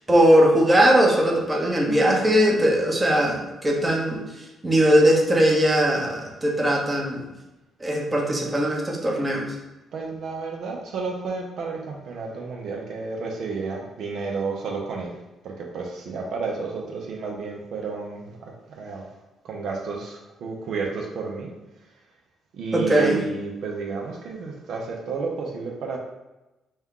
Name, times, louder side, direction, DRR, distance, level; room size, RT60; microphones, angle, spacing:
voice 1, 0.1-4.2 4.6-7.2 7.8-9.5 22.7-23.2, equal, 15° right, -1 dB, 0.8 m, -19 dB
voice 2, 8.1-8.5 9.9-15.2 15.4-19.1 19.4-21.5 22.5-26.0, right 4 dB, 70° right, -1 dB, 0.6 m, -32 dB
4.2 x 2.4 x 3.6 m, 1.0 s
cardioid pair, 90°, 0 cm